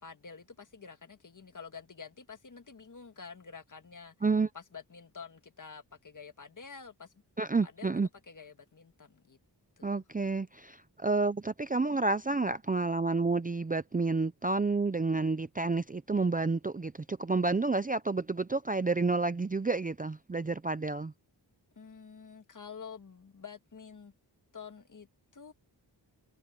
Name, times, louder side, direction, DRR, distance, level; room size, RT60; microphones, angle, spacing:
voice 1, 0.0-4.1 4.5-7.1 7.6-7.9 8.3-9.4 9.8-10.0 21.7-24.1 24.5-25.1 25.3-25.5, left 5 dB, 45° left, 1.7 m, -48 dB
voice 2, 7.4-8.1 9.8-21.1, right 3 dB, 20° right, 0.5 m, -30 dB
wide cardioid pair, 105°, 43 cm